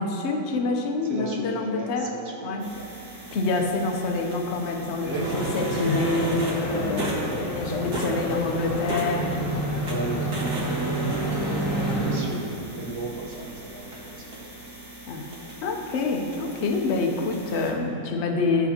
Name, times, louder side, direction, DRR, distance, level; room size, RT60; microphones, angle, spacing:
voice 1, 0.0-2.1 2.4-2.7 3.3-9.3 15.1-15.4 15.6-18.7, left 3 dB, 55° left, 3 dB, 0.8 m, -27 dB
voice 2, 1.1-2.9 5.0-5.4 9.9-10.4 12.0-14.5 17.9-18.0, right 2 dB, 45° right, -3 dB, 0.9 m, -36 dB
sound 1, 2.6-17.7, right 1 dB, 65° right, 2.1 m, -34 dB
sound 2, 5.0-12.2, right 1 dB, 10° right, 1.9 m, -30 dB
13.0 x 6.7 x 2.8 m, 2.7 s
omnidirectional pair, 1.9 m